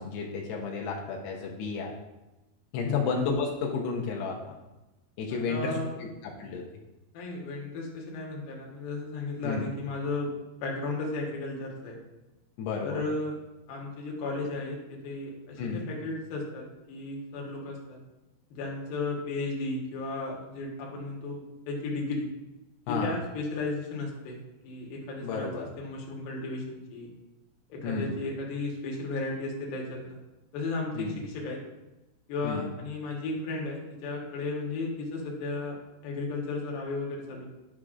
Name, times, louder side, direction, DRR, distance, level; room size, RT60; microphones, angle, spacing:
voice 1, 0.0-1.9 2.7-4.4 5.2-6.7 9.4-9.7 12.6-13.0 15.6-15.9 22.9-23.2 25.2-25.7 27.8-28.2 31.0-31.2 32.4-32.7, left 4 dB, 90° left, -1 dB, 3.0 m, -32 dB
voice 2, 5.3-6.0 7.1-12.0 12.8-13.4 13.7-18.0 18.5-22.3 22.9-24.4 24.6-27.1 27.7-30.2 30.5-31.6 32.3-35.8 36.0-37.5, left 3 dB, 65° left, -2 dB, 2.9 m, -34 dB
9.8 x 6.2 x 2.5 m, 1.0 s
omnidirectional pair, 4.7 m